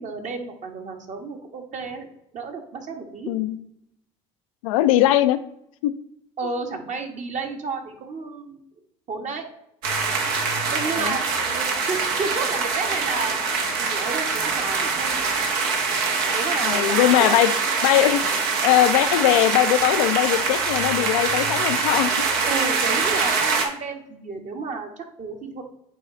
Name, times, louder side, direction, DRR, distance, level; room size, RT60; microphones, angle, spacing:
voice 1, 0.0-2.1 2.3-3.3 6.4-8.6 9.1-9.4 10.1-10.2 10.7-11.2 11.5-13.4 13.8-15.2 16.3-17.4 22.4-25.6, right 4 dB, 45° right, 4 dB, 1.5 m, -31 dB
voice 2, 3.3-3.6 4.6-5.4 5.8-5.9 11.0-11.2 16.6-17.5 17.8-18.2 18.6-22.1, left 14 dB, 80° left, 12 dB, 0.5 m, -20 dB
sound 1, 9.8-23.7, right 4 dB, 70° right, 1.2 m, -24 dB
8.6 x 3.2 x 3.8 m, 0.78 s
hypercardioid pair, 70°, 17 cm